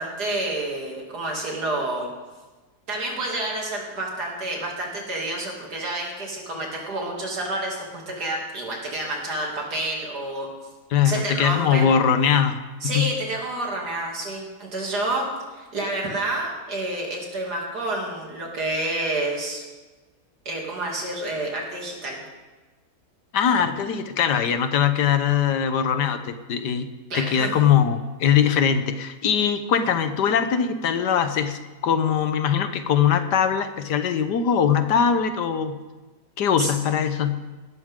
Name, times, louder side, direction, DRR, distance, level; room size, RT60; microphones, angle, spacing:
voice 1, 0.0-2.1 2.9-10.5 11.0-11.9 12.8-19.6 20.4-22.2 27.1-27.5 36.6-36.7, right 2 dB, 75° right, -1 dB, 3.3 m, -29 dB
voice 2, 10.9-13.1 23.3-26.9 27.1-35.8 36.4-37.4, left 8 dB, 85° left, 9 dB, 1.6 m, -21 dB
18.0 x 12.5 x 3.7 m, 1.2 s
omnidirectional pair, 1.7 m